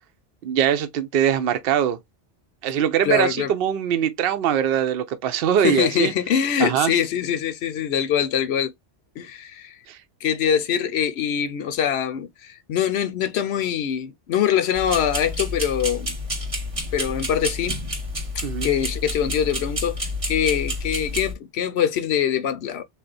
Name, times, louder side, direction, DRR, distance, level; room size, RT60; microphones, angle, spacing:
voice 1, 0.4-2.0 2.6-6.1 6.6-6.9 9.9-10.0 18.4-18.7, right 9 dB, 60° right, 0.7 m, -22 dB
voice 2, 3.0-3.5 5.6-8.7 9.2-9.8 10.2-16.2 16.9-17.8 18.6-22.8, left 9 dB, 70° left, 0.8 m, -23 dB
sound 1, 14.7-21.3, left 1 dB, 30° right, 1.0 m, -29 dB
3.5 x 2.3 x 3.9 m
omnidirectional pair, 1.2 m